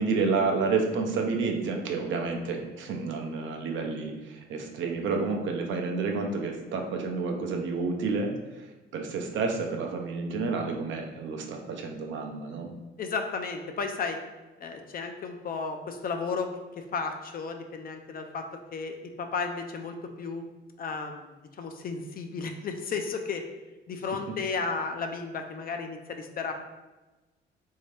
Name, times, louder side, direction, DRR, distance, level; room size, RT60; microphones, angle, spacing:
voice 1, 0.0-8.7 8.9-12.7, right 4 dB, 75° right, 3 dB, 0.6 m, -30 dB
voice 2, 13.0-14.2 14.6-20.5 20.8-23.5 23.9-26.5, left 4 dB, 45° left, 5 dB, 0.5 m, -34 dB
3.3 x 2.7 x 3.2 m, 1.1 s
cardioid pair, 90°, 20 cm